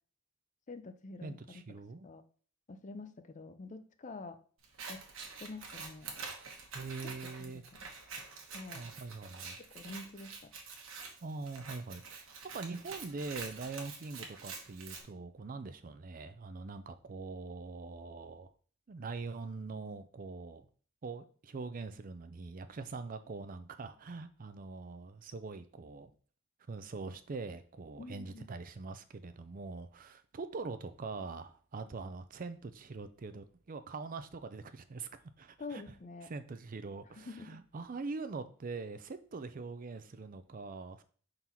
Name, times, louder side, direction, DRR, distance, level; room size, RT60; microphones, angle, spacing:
voice 1, 0.7-1.4 2.0-2.2 2.7-4.4 4.9-5.0 5.4-6.1 7.0-7.9 8.5-8.9 9.7-10.5 28.0-28.5 35.6-36.3 37.2-37.6, left 3 dB, 35° left, 9 dB, 0.5 m, -47 dB
voice 2, 1.2-2.1 6.7-7.6 8.7-9.6 11.2-12.3 12.5-18.5 18.9-20.7 21.0-26.1 26.7-35.1 35.4-35.8 36.2-41.0, right 4 dB, 40° right, 10 dB, 0.4 m, -43 dB
Scissors, 4.6-15.0, right 4 dB, 60° right, 1.2 m, -47 dB
4.5 x 3.9 x 5.6 m, 0.43 s
head